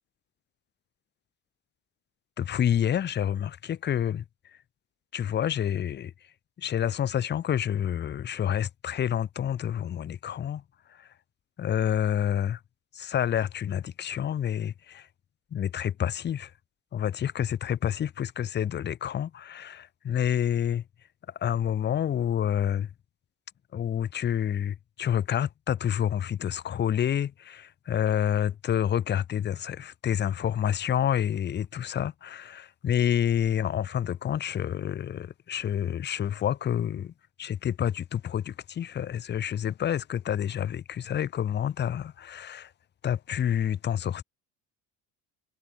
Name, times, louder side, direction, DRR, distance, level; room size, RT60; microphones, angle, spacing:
voice 1, 2.4-4.2 5.1-6.1 6.6-10.6 10.9-11.1 11.6-12.6 12.9-15.1 15.5-16.5 16.9-20.8 21.4-22.9 23.7-37.1 37.4-42.7 43.0-44.2, left 9 dB, 30° left, 0.7 m, -28 dB
cardioid pair, 150°, 37 cm